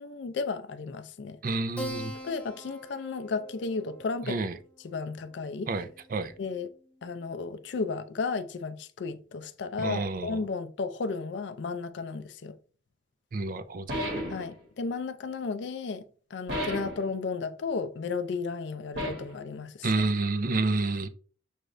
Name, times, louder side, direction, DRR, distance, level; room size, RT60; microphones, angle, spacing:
voice 1, 0.0-1.4 2.2-4.4 4.8-5.7 6.4-6.7 7.0-12.6 14.3-20.0, left 4 dB, 70° left, 0.4 m, -34 dB
voice 2, 1.4-2.1 4.2-4.6 5.7-6.3 9.8-10.4 13.3-14.0 19.8-21.1, right 3 dB, 50° right, 0.5 m, -29 dB
Keyboard (musical), 1.8-6.7, equal, 5° left, 0.8 m, -44 dB
sound 1, 13.9-14.5 16.5-17.1 19.0-19.4, equal, 75° right, 1.8 m, -33 dB
6.4 x 2.4 x 3.2 m
head